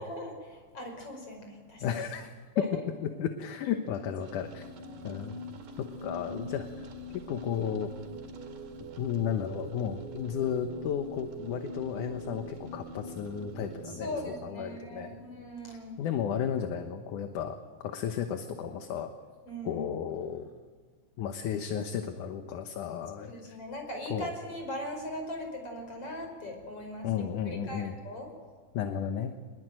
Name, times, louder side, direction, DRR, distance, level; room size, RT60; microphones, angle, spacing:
voice 1, 0.0-2.0 2.6-2.7 4.8-5.2 6.1-6.2 13.8-15.9 19.5-19.9 23.2-27.1 27.4-28.3, left 1 dB, 45° left, 3 dB, 6.3 m, -39 dB
voice 2, 1.8-2.7 3.0-4.7 5.0-5.4 5.8-6.9 7.1-7.9 9.0-14.2 14.4-15.2 16.0-19.1 19.7-20.5 21.2-23.6 24.1-24.3 27.0-28.0 28.7-29.4, left 8 dB, 75° left, 6 dB, 2.6 m, -33 dB
sound 1, 4.2-14.4, right 1 dB, 85° right, 3.7 m, -43 dB
25.0 x 21.0 x 9.1 m, 1.5 s
omnidirectional pair, 3.7 m